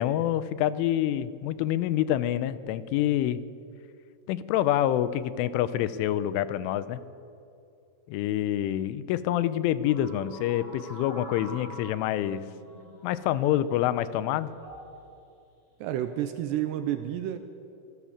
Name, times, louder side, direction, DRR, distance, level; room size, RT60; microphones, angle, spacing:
voice 1, 0.0-3.4 4.3-7.0 8.1-12.4 13.0-14.5, left 12 dB, 90° left, 15 dB, 3.3 m, -27 dB
sound 1, 9.8-13.7 14.5-14.9 15.8-16.2, equal, 10° left, 6.2 m, -46 dB
voice 2, 15.8-17.4, right 12 dB, 80° right, 9 dB, 2.7 m, -30 dB
26.0 x 17.0 x 7.3 m, 2.6 s
omnidirectional pair, 5.5 m